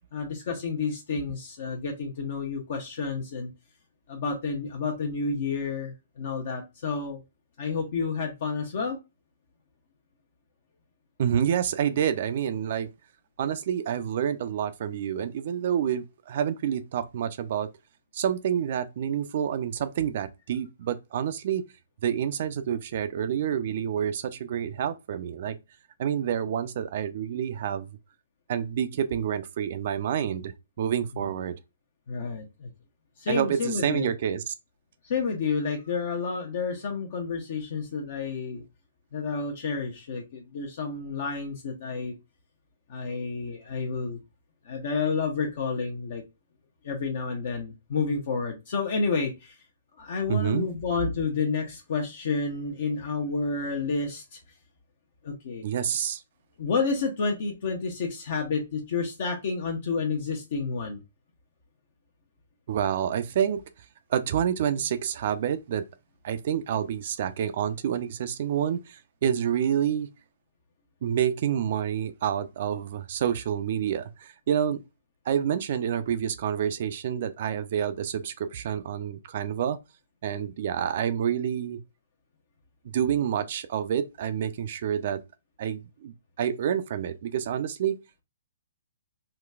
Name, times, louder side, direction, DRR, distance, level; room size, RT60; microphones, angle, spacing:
voice 1, 0.1-3.5 4.1-7.2 7.6-9.0 32.1-32.7 33.2-34.1 35.0-38.6 39.1-42.1 42.9-44.2 44.6-46.2 46.8-49.6 50.0-54.4 55.2-55.7 56.6-61.0, left 4 dB, 55° left, 0.7 m, -30 dB
voice 2, 11.2-12.9 13.4-17.7 18.1-21.6 22.0-25.6 26.0-27.9 28.5-31.5 33.3-34.5 50.3-50.7 55.6-56.2 62.7-63.6 64.1-65.8 66.2-70.1 71.0-74.8 75.3-79.8 80.2-81.8 82.9-85.2 85.6-88.0, right 9 dB, 50° right, 0.4 m, -28 dB
3.9 x 2.2 x 2.3 m
hypercardioid pair, 135°, 0 cm